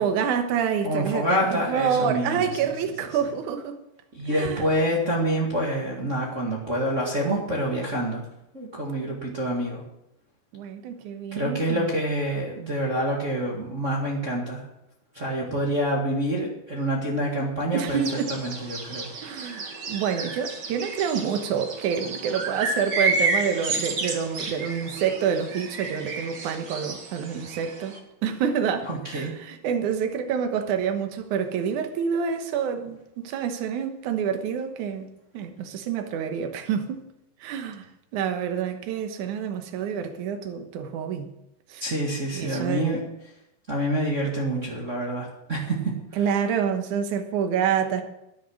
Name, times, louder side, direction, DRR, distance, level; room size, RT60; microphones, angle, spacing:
voice 1, 0.0-3.8 4.3-4.7 10.5-12.0 17.7-18.4 19.2-35.1 35.3-37.1 37.4-37.9 38.1-41.3 41.7-41.9 42.3-42.9 46.1-48.0, right 7 dB, 65° right, 2.1 m, -27 dB
voice 2, 0.8-2.5 4.1-8.2 8.5-9.8 11.3-14.6 15.1-18.0 18.4-19.1 28.9-29.3 41.8-43.0 43.7-45.8, right 1 dB, 30° right, 1.3 m, -27 dB
sound 1, 17.9-28.0, right 3 dB, 85° right, 0.9 m, -31 dB
12.0 x 10.5 x 6.4 m
omnidirectional pair, 4.8 m